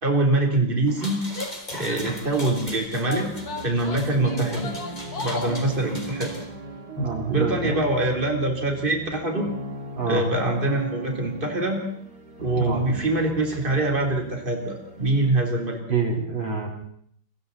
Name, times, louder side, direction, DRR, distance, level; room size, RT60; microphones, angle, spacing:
voice 1, 0.0-1.2 1.7-3.3 3.6-4.7 5.2-6.3 7.3-9.5 10.1-11.8 12.4-15.8, right 2 dB, 25° right, 1 dB, 4.0 m, -24 dB
sound 1, 0.9-6.4, left 1 dB, 20° left, 4.1 m, -39 dB
Female speech woman speaking / Yell, 1.3-2.5 3.0-5.7, left 3 dB, 50° left, 2.8 m, -36 dB
sound 2, 3.1-15.8, right 2 dB, 50° right, 3.9 m, -38 dB
voice 2, 7.0-7.8 10.0-10.2 12.5-12.8 15.9-16.7, right 4 dB, 75° right, 1 dB, 4.8 m, -26 dB
29.5 x 23.5 x 4.2 m, 0.64 s
omnidirectional pair, 2.1 m